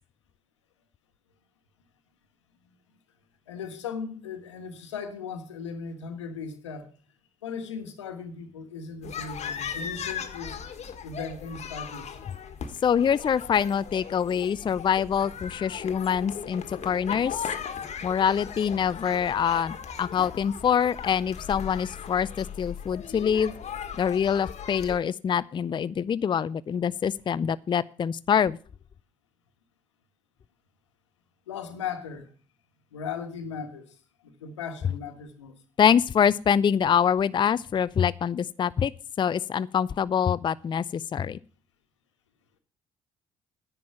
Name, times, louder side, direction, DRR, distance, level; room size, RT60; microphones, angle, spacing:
voice 1, 3.5-6.9 7.4-10.6 11.0-12.3 31.5-32.3 32.9-34.0 34.2-35.6, left 6 dB, 85° left, 1.4 m, -37 dB
sound 1, 9.0-25.0, left 7 dB, 50° left, 1.6 m, -38 dB
voice 2, 12.8-17.4 18.0-23.5 24.0-28.6 35.8-38.9 39.2-41.4, left 8 dB, 30° left, 0.5 m, -25 dB
10.5 x 9.0 x 5.8 m
hypercardioid pair, 50°, 15 cm